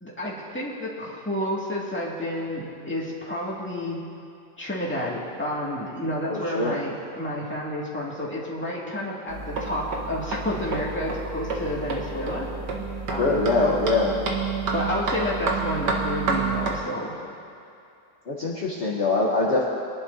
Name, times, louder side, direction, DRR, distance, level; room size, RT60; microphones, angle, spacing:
voice 1, 0.0-4.0 4.6-12.5 13.1-13.8 14.7-17.1, left 1 dB, 5° left, -6 dB, 2.1 m, -30 dB
voice 2, 6.2-6.8 13.2-14.2 18.3-19.6, left 3 dB, 45° left, -5 dB, 1.4 m, -23 dB
sound 1, 9.3-16.8, right 4 dB, 70° right, 1.9 m, -29 dB
23.0 x 11.0 x 2.8 m, 2.6 s
omnidirectional pair, 1.9 m